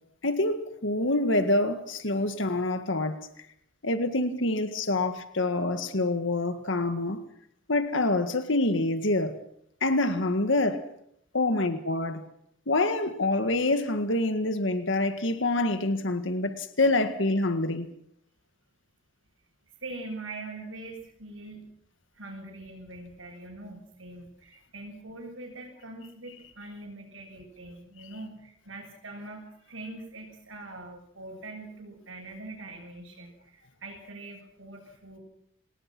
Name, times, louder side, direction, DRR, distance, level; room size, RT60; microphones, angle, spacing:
voice 1, 0.2-3.3 3.8-7.2 7.7-9.4 9.8-10.9 11.3-12.2 12.7-17.9, left 2 dB, 75° left, 1.9 m, -26 dB
voice 2, 19.8-21.6 22.1-35.2, right 2 dB, 85° right, 6.9 m, -43 dB
27.5 x 19.5 x 6.1 m
head